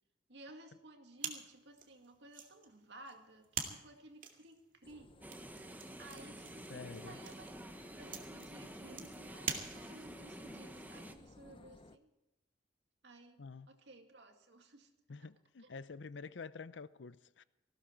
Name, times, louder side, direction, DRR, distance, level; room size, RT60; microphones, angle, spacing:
voice 1, 0.3-5.2 6.0-7.5 7.8-12.1 13.0-14.9 15.2-15.3 15.6-15.8, right 2 dB, 70° right, 2.2 m, -56 dB
sound 1, 1.2-10.2, right 7 dB, 50° right, 2.3 m, -46 dB
sound 2, 4.8-12.0, left 2 dB, 30° left, 0.6 m, -59 dB
sound 3, 5.2-11.1, right 1 dB, 10° right, 1.2 m, -50 dB
voice 2, 6.7-7.2 13.4-13.7 15.1-17.4, left 4 dB, 85° left, 0.6 m, -48 dB
19.0 x 15.5 x 4.6 m
head